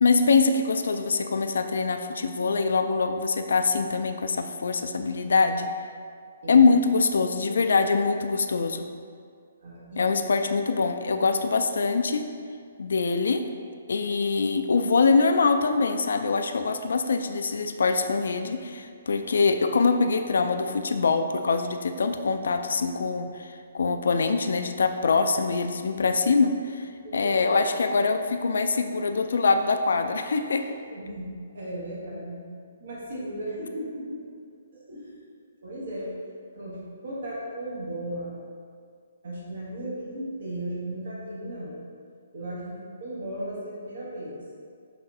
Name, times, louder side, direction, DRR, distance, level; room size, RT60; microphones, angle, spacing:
voice 1, 0.0-5.7 6.5-8.9 10.0-12.3 12.8-13.4 13.9-30.7, left 4 dB, 70° left, 7 dB, 0.3 m, -24 dB
voice 2, 9.6-10.1 10.5-11.2 27.0-27.5 27.9-28.0 30.6-32.4 32.8-34.2 34.7-35.2 35.6-36.1 36.5-38.3 39.2-41.8 42.3-44.4, right 1 dB, 65° right, -6 dB, 1.2 m, -36 dB
5.8 x 3.4 x 2.6 m, 2.2 s
figure-of-eight pair, 135°, 0 cm